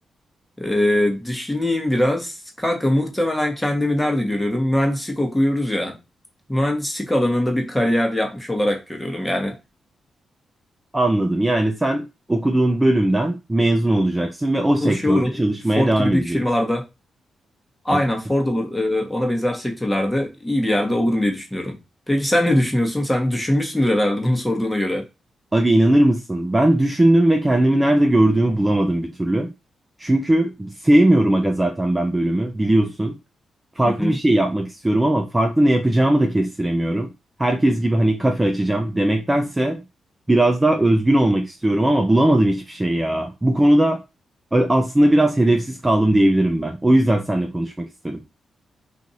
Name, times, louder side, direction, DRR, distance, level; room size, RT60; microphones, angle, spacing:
voice 1, 0.6-6.0 6.5-9.6 14.8-15.3 15.7-16.8 17.8-21.8 22.1-25.1 33.8-34.2, left 1 dB, 10° left, 1.1 m, -21 dB
voice 2, 10.9-16.4 17.9-18.0 25.5-29.5 30.0-33.1 33.8-37.1 37.4-39.8 40.3-44.0 44.5-48.2, right 1 dB, 15° right, 0.5 m, -19 dB
2.6 x 2.5 x 4.2 m
cardioid pair, 65°, 0 cm